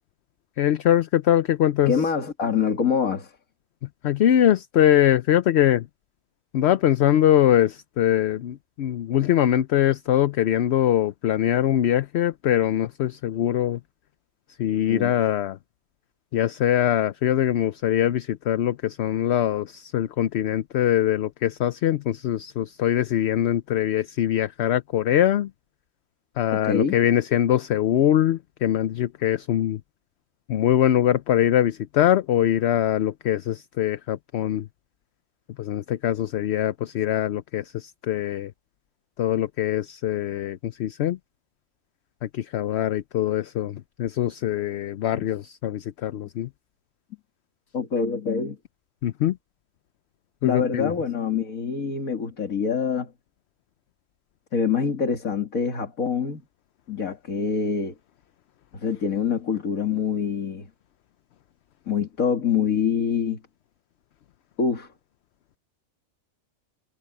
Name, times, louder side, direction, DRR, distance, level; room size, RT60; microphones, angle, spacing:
voice 1, 0.6-2.0 4.0-5.9 6.5-13.8 14.6-15.6 16.3-25.5 26.4-29.8 30.5-34.7 35.6-38.5 39.2-41.2 42.2-46.5 49.0-49.4 50.4-50.9, left 11 dB, 60° left, 0.8 m, -22 dB
voice 2, 1.9-3.3 14.9-15.1 26.5-27.0 45.1-45.2 47.7-48.6 50.4-53.1 54.5-56.4 56.9-57.9 58.7-60.7 61.9-63.4 64.6-64.9, left 6 dB, 85° left, 2.5 m, -25 dB
omnidirectional pair, 1.4 m